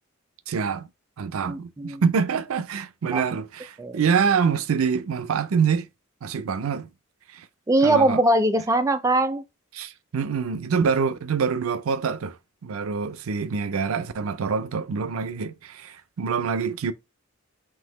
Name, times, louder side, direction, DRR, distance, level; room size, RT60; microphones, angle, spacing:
voice 1, 0.5-0.9 1.2-5.9 6.2-6.9 7.3-7.5 7.8-8.2 9.7-12.4 12.6-16.9, right 6 dB, 90° right, 0.5 m, -25 dB
voice 2, 1.5-2.0 3.1-3.2 3.8-4.0 7.7-9.4, right 2 dB, 15° right, 0.4 m, -21 dB
3.8 x 2.8 x 3.9 m
head